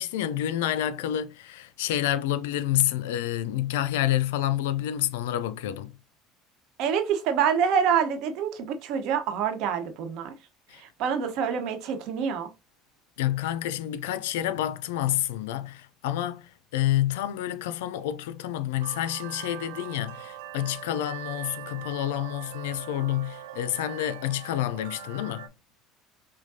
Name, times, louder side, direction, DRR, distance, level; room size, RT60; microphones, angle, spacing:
voice 1, 0.0-5.9 10.7-10.8 13.2-25.5, left 12 dB, 90° left, 0.4 m, -28 dB
voice 2, 6.8-10.3 10.7-12.5, right 7 dB, 65° right, 1.0 m, -26 dB
sound 1, 18.8-25.5, right 12 dB, 85° right, 0.5 m, -42 dB
6.1 x 2.2 x 2.7 m
supercardioid pair, 100°, 0 cm